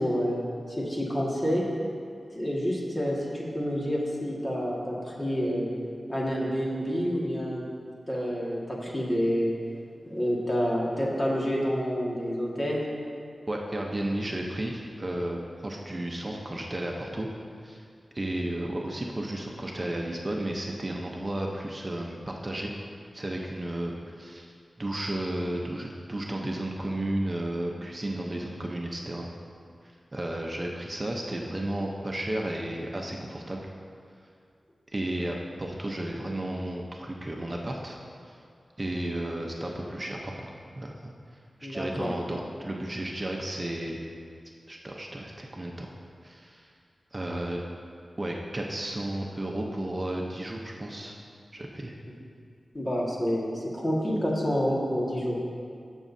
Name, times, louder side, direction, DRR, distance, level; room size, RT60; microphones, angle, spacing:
voice 1, 0.0-1.6 2.3-5.7 6.1-7.6 8.1-9.5 10.0-12.8 41.6-42.1 52.7-55.4, equal, 30° left, -4 dB, 1.9 m, -28 dB
voice 2, 13.5-17.3 17.6-17.8 18.1-22.7 23.1-24.5 24.8-29.3 30.1-33.7 34.9-38.0 38.3-38.4 38.8-41.1 41.6-44.0 44.7-45.9 46.2-46.7 47.1-47.6 48.2-51.1 51.5-51.9, right 1 dB, 30° right, 0 dB, 0.8 m, -33 dB
14.5 x 6.2 x 2.7 m, 2.3 s
wide cardioid pair, 65°, 0 cm